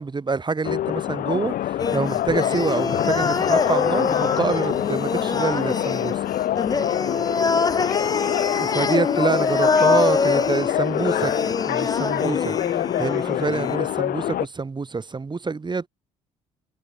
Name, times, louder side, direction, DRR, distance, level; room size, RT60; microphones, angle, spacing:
voice 1, 0.0-6.2 8.6-11.3 11.7-12.6 13.0-15.9, right 4 dB, 25° right, 3.6 m, -26 dB
sound 1, 0.6-14.5, left 12 dB, 60° left, 7.3 m, -25 dB
sound 2, 1.8-13.8, left 4 dB, 20° left, 1.3 m, -25 dB
hypercardioid pair, 55°, 17 cm